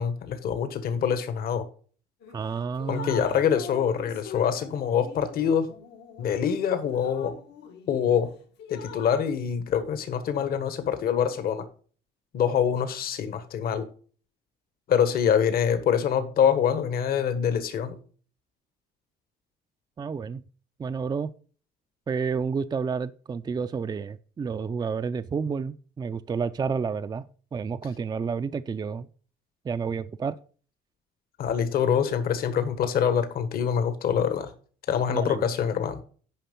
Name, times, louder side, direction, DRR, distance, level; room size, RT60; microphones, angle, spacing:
voice 1, 0.0-1.7 2.9-5.7 6.2-7.3 7.9-8.3 8.7-11.6 12.3-13.9 14.9-18.0 31.4-34.5 34.9-36.0, left 8 dB, 60° left, 10 dB, 1.5 m, -25 dB
Drip, 2.2-2.4 2.8-8.2 8.6-9.3, left 7 dB, 75° left, 1.8 m, -42 dB
voice 2, 2.3-3.2 20.0-20.4 20.8-21.3 22.1-27.3 27.5-29.1 29.6-30.4 35.1-35.4, right 5 dB, 25° right, 11 dB, 0.5 m, -30 dB
10.5 x 5.4 x 5.3 m, 0.41 s
cardioid pair, 110°, 17 cm